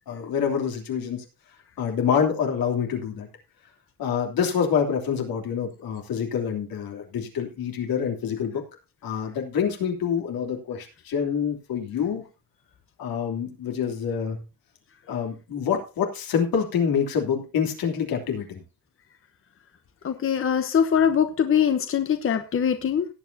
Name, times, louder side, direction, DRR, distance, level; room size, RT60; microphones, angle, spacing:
voice 1, 0.1-1.2 1.8-3.3 4.0-8.6 9.0-12.2 13.0-14.4 15.1-18.6, left 7 dB, 85° left, 2 dB, 3.1 m, -26 dB
voice 2, 20.0-23.1, left 8 dB, 40° left, 8 dB, 1.0 m, -22 dB
18.0 x 8.5 x 2.8 m, 0.29 s
cardioid pair, 140°, 35 cm